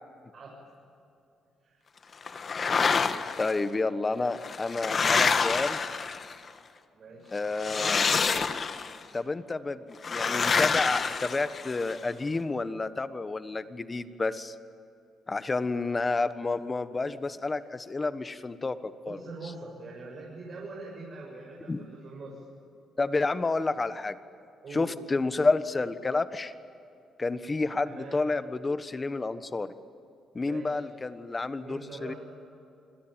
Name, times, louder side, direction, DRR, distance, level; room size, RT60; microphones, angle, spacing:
sound 1, 2.3-3.5 4.3-6.5 7.6-9.0 10.0-11.9, left 5 dB, 45° left, 1.5 m, -27 dB
voice 1, 2.8-3.1 6.9-7.4 19.1-22.4 24.6-24.9 27.8-28.2 30.4-30.8 31.5-32.2, right 3 dB, 50° right, -2 dB, 7.3 m, -43 dB
voice 2, 3.4-5.8 7.3-8.1 9.1-14.5 15.3-19.2 21.7-21.8 23.0-24.2 24.7-26.5 27.2-29.7 30.3-32.1, left 3 dB, 25° left, 12 dB, 1.3 m, -30 dB
27.5 x 22.0 x 9.1 m, 2.6 s
cardioid pair, 90°, 0 cm